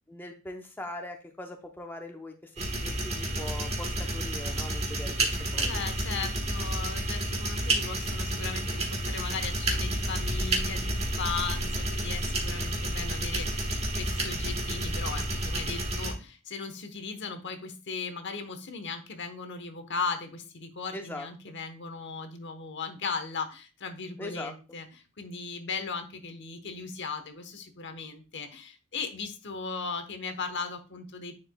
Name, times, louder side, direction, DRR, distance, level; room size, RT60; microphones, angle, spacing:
voice 1, 0.1-5.7 20.9-21.3 24.2-24.5, left 1 dB, 10° left, 3 dB, 0.6 m, -41 dB
sound 1, 2.6-16.1, right 1 dB, 30° right, 1.4 m, -30 dB
voice 2, 5.6-24.9 25.2-31.4, left 5 dB, 60° left, 7 dB, 1.0 m, -37 dB
9.9 x 4.7 x 2.2 m, 0.32 s
head